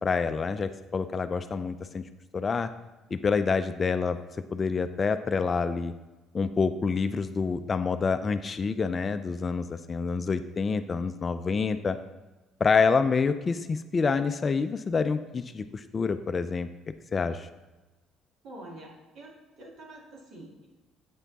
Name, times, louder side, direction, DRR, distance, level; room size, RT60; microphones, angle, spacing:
voice 1, 0.0-2.0 2.3-2.7 3.1-4.2 4.5-5.9 6.3-12.0 12.6-16.7 17.1-17.5, left 5 dB, 30° left, 10 dB, 0.3 m, -27 dB
voice 2, 18.4-20.7, right 1 dB, 60° right, -2 dB, 2.2 m, -46 dB
8.4 x 5.8 x 4.0 m, 1.1 s
cardioid pair, 130°, 0 cm